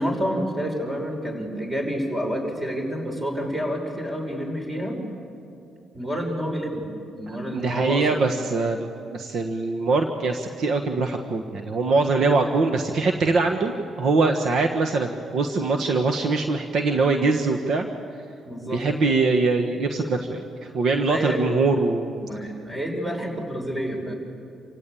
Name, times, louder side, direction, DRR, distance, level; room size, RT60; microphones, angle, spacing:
voice 1, 0.0-5.0 5.9-6.9 7.1-8.2 18.4-18.8 21.1-21.4 22.2-24.1, equal, 20° right, 2 dB, 5.7 m, -29 dB
voice 2, 7.5-17.9 18.7-20.4 20.7-22.2, right 3 dB, 65° right, 4 dB, 1.4 m, -23 dB
28.0 x 16.5 x 8.6 m, 2.5 s
cardioid pair, 90°, 0 cm